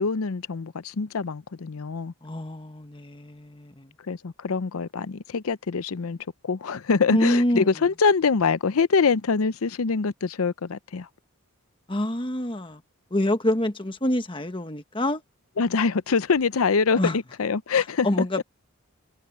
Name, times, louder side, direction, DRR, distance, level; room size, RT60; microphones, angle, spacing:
voice 1, 0.0-2.1 4.1-6.2 6.4-11.1 15.6-18.1, left 5 dB, 80° left, 0.6 m, -24 dB
voice 2, 2.2-3.9 7.1-7.7 11.9-12.8 13.1-15.2 17.0-17.2 18.0-18.4, left 1 dB, 25° left, 1.4 m, -26 dB
head